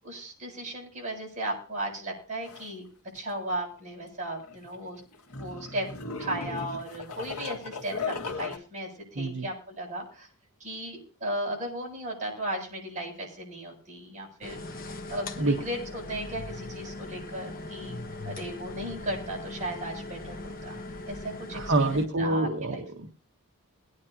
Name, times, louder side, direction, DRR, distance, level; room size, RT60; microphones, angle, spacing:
voice 1, 0.0-2.8 3.1-5.0 5.4-5.9 6.2-10.3 10.6-14.6 15.1-20.8 21.1-22.8, right 1 dB, 35° right, -2 dB, 7.9 m, -36 dB
sound 1, 2.4-2.7 3.2-3.3 4.4-8.6, left 4 dB, 80° left, 1.7 m, -37 dB
voice 2, 9.2-9.5 15.4-15.5 21.5-23.1, right 2 dB, 55° right, 2 dB, 1.3 m, -26 dB
sound 2, 14.4-22.1, left 2 dB, 40° left, 1.2 m, -40 dB
22.5 x 9.8 x 2.9 m, 0.38 s
head